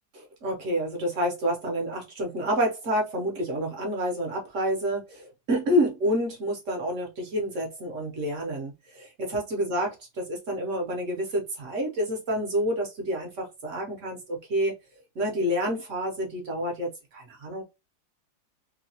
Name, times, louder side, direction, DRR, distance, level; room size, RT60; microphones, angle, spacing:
voice 1, 0.1-14.7 15.2-17.6, equal, 60° right, 1.0 m, -28 dB
3.0 x 2.2 x 2.7 m
omnidirectional pair, 1.7 m